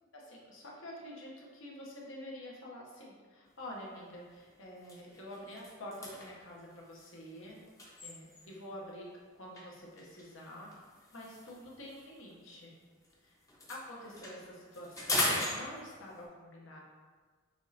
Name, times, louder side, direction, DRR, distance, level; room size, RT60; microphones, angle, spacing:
voice 1, 0.2-7.6 8.0-9.1 9.3-12.7 13.2-13.4 13.7-16.8, left 1 dB, 65° left, -3 dB, 1.0 m, -47 dB
sound 1, 3.6-3.8 4.3-4.4 4.8-8.7 9.6-13.1 13.4-16.3, left 1 dB, 15° left, 0.8 m, -39 dB
6.1 x 3.1 x 2.8 m, 1.5 s
head